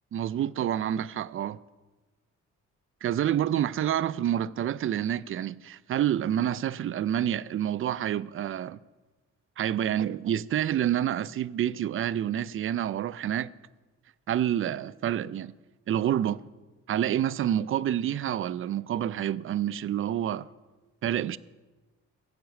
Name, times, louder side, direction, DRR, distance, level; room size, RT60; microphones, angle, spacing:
voice 1, 0.1-1.6 3.0-8.8 9.6-13.5 14.3-15.5 15.9-16.4 16.9-20.5 21.0-21.4, right 10 dB, 45° right, 0.4 m, -28 dB
15.5 x 6.2 x 8.2 m
cardioid pair, 90°, 30 cm